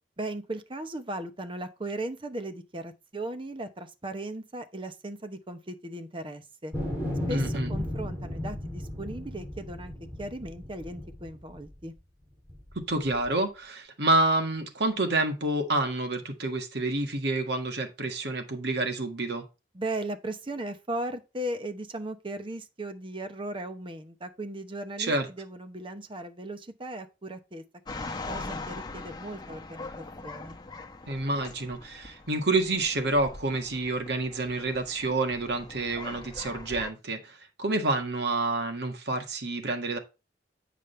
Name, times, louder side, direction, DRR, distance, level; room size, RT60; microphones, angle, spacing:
voice 1, 0.2-6.7 7.3-9.9 10.2-11.9 19.7-28.0 28.3-30.6, right 1 dB, 30° right, 0.9 m, -37 dB
sound 1, 6.7-11.9 12.5-13.3, left 1 dB, 10° right, 5.0 m, -35 dB
voice 2, 7.3-7.7 12.9-19.4 25.0-25.3 31.1-40.0, right 2 dB, 65° right, 1.7 m, -28 dB
sound 2, 27.9-36.9, left 3 dB, 25° left, 1.0 m, -42 dB
8.5 x 5.1 x 3.3 m
head